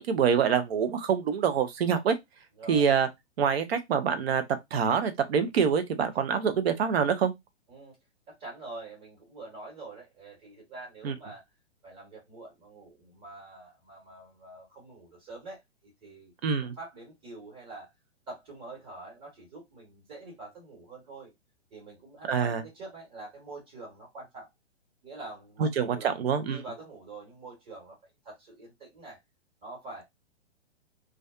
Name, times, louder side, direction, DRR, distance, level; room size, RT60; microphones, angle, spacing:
voice 1, 0.0-2.2 2.7-3.1 3.4-4.4 4.7-7.3 11.0-11.1 16.4-16.7 22.3-22.6 25.6-26.6, right 7 dB, 55° right, 0.7 m, -25 dB
voice 2, 2.6-2.9 6.1-6.2 7.7-8.0 8.3-11.4 11.8-16.3 16.6-17.9 18.3-21.3 21.7-24.5 25.0-26.2 26.4-29.2 29.6-30.0, right 2 dB, 35° right, 1.3 m, -45 dB
2.5 x 2.2 x 2.3 m
hypercardioid pair, 125°, 37 cm